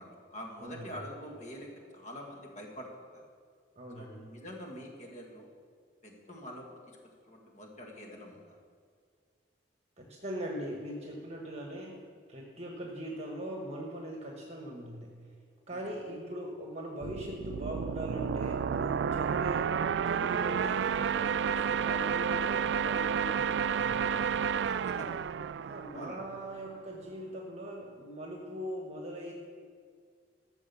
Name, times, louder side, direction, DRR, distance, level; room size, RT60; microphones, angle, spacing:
voice 1, 0.0-3.2 3.9-5.5 6.0-7.0 7.3-8.6 15.7-15.8 24.7-25.2 25.9-26.2, equal, 40° left, 0 dB, 2.0 m, -45 dB
voice 2, 0.6-1.0 3.7-4.3 10.0-12.0 12.3-15.1 15.7-19.8 20.0-24.3 25.6-29.3, equal, 35° right, 0 dB, 1.3 m, -41 dB
sound 1, 17.0-26.6, right 7 dB, 70° right, 0.3 m, -31 dB
13.5 x 6.4 x 6.9 m, 2.1 s
head